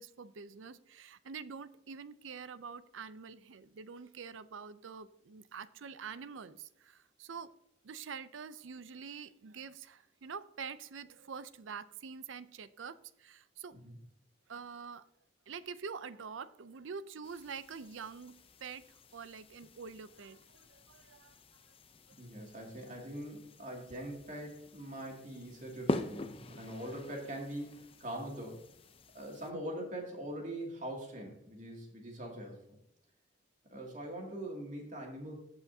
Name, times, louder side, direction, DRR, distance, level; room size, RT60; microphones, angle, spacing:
voice 1, 0.0-7.5 7.8-13.8 14.5-15.0 15.5-18.8 19.1-21.3, right 6 dB, 85° right, 15 dB, 0.5 m, -46 dB
sound 1, 17.2-29.5, left 2 dB, 30° left, 0.5 m, -45 dB
voice 2, 22.2-28.6 29.1-32.8 33.7-35.3, right 1 dB, 40° right, 0 dB, 2.4 m, -42 dB
15.0 x 5.7 x 2.7 m, 0.78 s
head